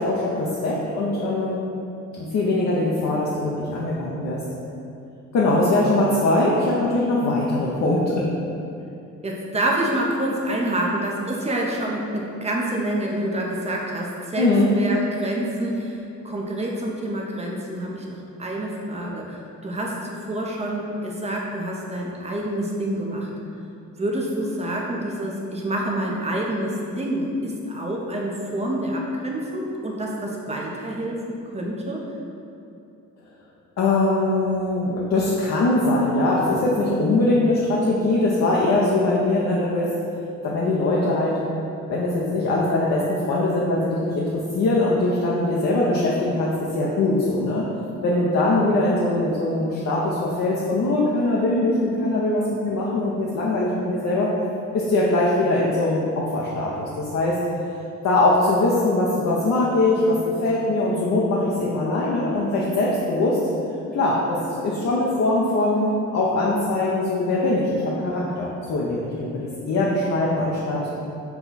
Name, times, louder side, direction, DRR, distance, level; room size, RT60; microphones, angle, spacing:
voice 1, 0.0-1.6 2.2-4.4 5.3-8.3 14.4-14.7 33.8-39.9 40.4-41.4 41.9-47.7 48.0-54.3 54.7-57.4 58.0-63.4 63.9-70.8, left 2 dB, 60° left, -5 dB, 0.7 m, -22 dB
voice 2, 9.2-14.5 14.8-16.0 16.2-23.3 24.0-31.2 31.5-32.0, right 1 dB, 20° right, -2 dB, 0.7 m, -27 dB
5.8 x 2.3 x 4.0 m, 2.7 s
cardioid pair, 90°, 30 cm